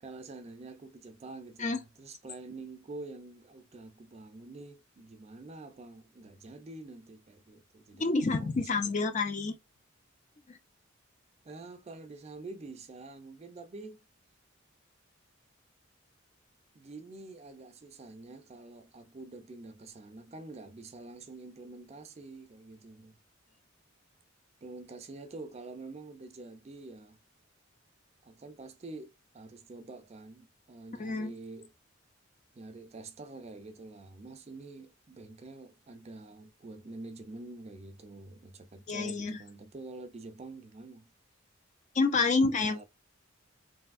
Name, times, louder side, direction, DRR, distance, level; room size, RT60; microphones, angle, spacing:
voice 1, 0.0-9.1 11.4-14.0 16.7-23.2 24.6-27.2 28.2-31.7 32.5-41.1 42.4-42.8, right 3 dB, 30° right, 0.4 m, -47 dB
voice 2, 7.9-9.5 10.5-10.6 31.0-31.3 38.9-39.4 41.9-42.8, left 3 dB, 35° left, 0.4 m, -28 dB
3.2 x 2.6 x 2.4 m
head